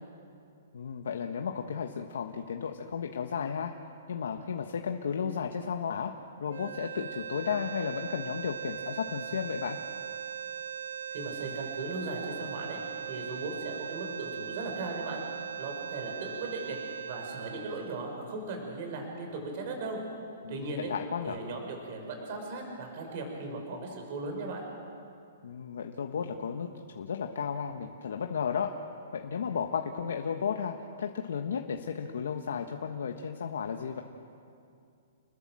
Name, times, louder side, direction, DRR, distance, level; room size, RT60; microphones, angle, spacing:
voice 1, 0.7-3.7 4.1-6.1 6.4-9.8 20.4-21.4 25.4-26.7 26.9-28.7 29.1-34.0, left 6 dB, 80° left, 4 dB, 1.4 m, -34 dB
sound 1, 6.5-18.7, right 8 dB, 75° right, 0.7 m, -40 dB
voice 2, 11.1-12.8 13.1-15.2 15.6-16.8 17.0-20.0 20.5-20.9 21.2-24.7, right 3 dB, 40° right, 2 dB, 6.0 m, -37 dB
29.5 x 21.0 x 7.8 m, 2.5 s
hypercardioid pair, 165°, 0 cm